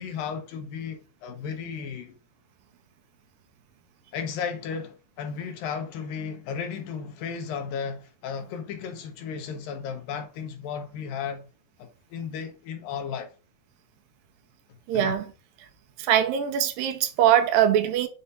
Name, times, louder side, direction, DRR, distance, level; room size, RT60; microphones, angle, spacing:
voice 1, 0.0-2.2 4.1-11.5 11.8-13.3 14.9-15.1, left 6 dB, 75° left, 2.4 m, -34 dB
voice 2, 14.9-15.3 16.0-18.1, right 10 dB, 80° right, 2.3 m, -22 dB
7.0 x 2.6 x 5.3 m
omnidirectional pair, 4.3 m